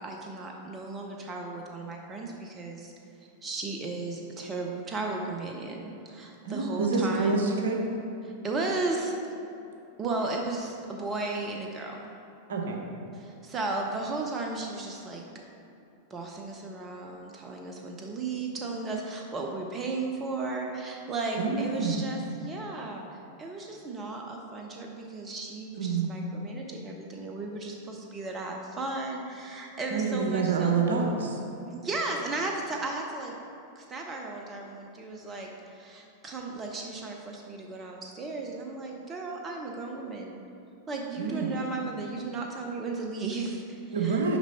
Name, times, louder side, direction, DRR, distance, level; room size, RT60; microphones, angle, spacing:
voice 1, 0.0-2.9 3.4-7.4 8.2-9.2 10.0-12.1 13.1-15.2 16.1-23.0 23.4-30.8 31.7-33.3 33.8-40.4 40.9-44.2, right 3 dB, 25° right, 1 dB, 0.6 m, -35 dB
voice 2, 6.4-7.8 12.5-12.8 21.4-22.0 25.7-26.1 29.9-31.4 41.2-41.5 43.9-44.4, right 4 dB, 65° right, 0 dB, 0.9 m, -27 dB
6.1 x 5.2 x 4.1 m, 2.7 s
figure-of-eight pair, 90°, 0 cm